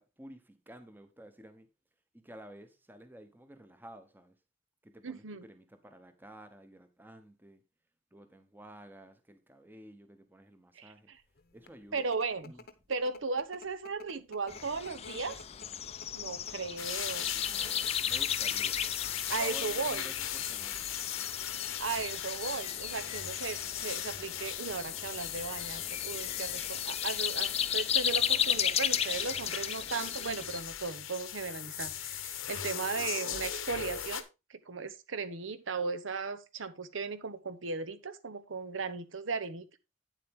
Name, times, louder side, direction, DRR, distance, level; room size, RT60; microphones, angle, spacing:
voice 1, 0.0-1.7 2.1-4.4 4.8-7.6 8.1-11.1 11.5-12.1 12.4-12.6 17.2-20.9, right 1 dB, 10° right, 1.0 m, -52 dB
voice 2, 5.0-5.4 10.8-10.9 11.9-12.5 12.9-15.4 16.1-17.3 19.3-20.0 21.8-34.2 34.5-39.7, right 4 dB, 75° right, 0.8 m, -36 dB
sound 1, 11.4-16.8 17.5-17.9 18.3-18.4 18.6-19.1, left 3 dB, 50° left, 0.9 m, -52 dB
sound 2, 14.5-30.6, left 9 dB, 30° left, 0.5 m, -35 dB
sound 3, 16.8-34.2, left 10 dB, 90° left, 1.0 m, -38 dB
9.1 x 7.5 x 3.6 m
head